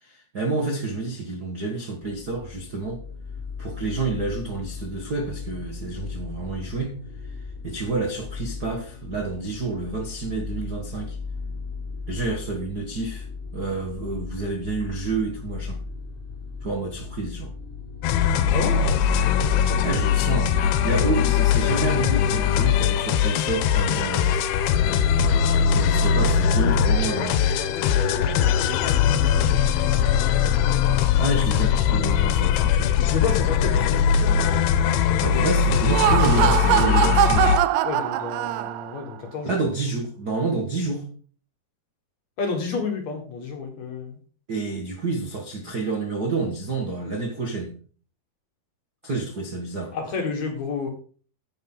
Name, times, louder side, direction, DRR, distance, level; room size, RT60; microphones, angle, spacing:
voice 1, 0.0-3.0 3.6-6.9 7.6-11.2 12.1-13.3 13.5-15.8 16.6-17.5 19.8-24.5 25.7-27.5 31.2-32.9 35.2-37.5 39.4-41.0 44.5-47.7 49.0-50.0, right 3 dB, 60° right, 1.0 m, -29 dB
sound 1, 2.0-21.2, left 4 dB, 5° left, 1.9 m, -36 dB
sound 2, 18.0-37.6, left 8 dB, 80° left, 2.7 m, -21 dB
voice 2, 18.5-18.8 26.5-30.3 33.0-34.4 37.8-39.5 42.4-44.2 49.9-50.9, left 4 dB, 55° left, 2.3 m, -31 dB
Laughter, 35.7-39.0, right 13 dB, 90° right, 1.9 m, -22 dB
10.5 x 8.6 x 3.9 m
omnidirectional pair, 4.7 m